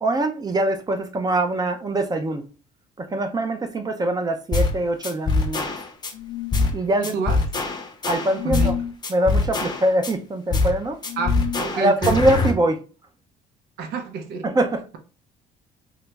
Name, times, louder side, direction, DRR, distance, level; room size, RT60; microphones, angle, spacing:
voice 1, 0.0-2.4 3.0-5.7 6.7-7.1 8.0-8.7 9.1-11.0 11.7-12.8 14.4-14.8, right 1 dB, 25° right, 0.4 m, -23 dB
sound 1, 4.5-4.8 5.0-6.1 6.5-6.8 7.0-8.8 9.0-10.1 10.5-10.8 11.0-12.5, left 3 dB, 25° left, 0.6 m, -23 dB
sound 2, 6.1-6.8 8.3-8.9 11.1-11.6, left 10 dB, 85° left, 0.5 m, -30 dB
voice 2, 7.0-7.4 8.4-8.7 11.2-12.2 12.4-12.5 13.8-14.5, right 4 dB, 80° right, 0.7 m, -28 dB
3.0 x 2.4 x 3.2 m
cardioid pair, 110°, 17 cm